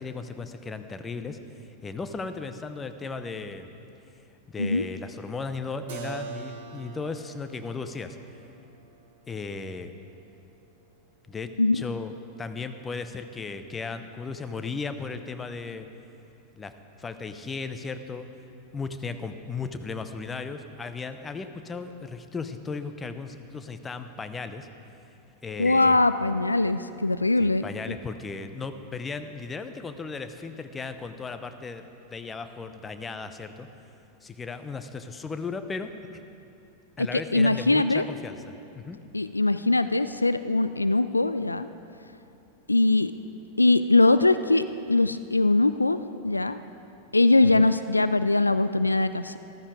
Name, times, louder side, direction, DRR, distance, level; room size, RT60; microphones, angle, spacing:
voice 1, 0.0-1.4 1.7-3.8 4.5-8.2 9.3-9.9 11.3-12.1 12.4-15.9 16.5-16.7 17.0-18.3 18.7-24.7 25.4-26.0 27.4-33.7 34.2-36.2 37.0-39.0 47.4-47.7, left 4 dB, 15° left, 9 dB, 0.7 m, -36 dB
Keyboard (musical), 5.9-11.5, right 6 dB, 55° right, 1.1 m, -44 dB
voice 2, 25.6-27.6 37.1-38.0 39.1-41.7 42.7-43.1 43.6-46.6 47.1-49.4, left 2 dB, 85° left, 12 dB, 0.3 m, -22 dB
14.5 x 13.5 x 4.8 m, 2.7 s
figure-of-eight pair, 90°, 0 cm